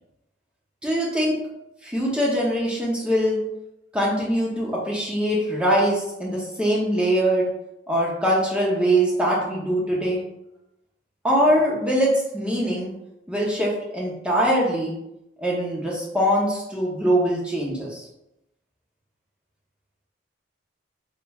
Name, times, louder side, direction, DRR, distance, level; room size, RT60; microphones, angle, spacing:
voice 1, 0.8-1.4 1.8-3.4 3.9-7.5 7.9-10.2 11.2-12.9 13.3-14.9 15.4-18.0, equal, 5° right, -5 dB, 0.6 m, -22 dB
3.3 x 3.0 x 2.3 m, 0.85 s
head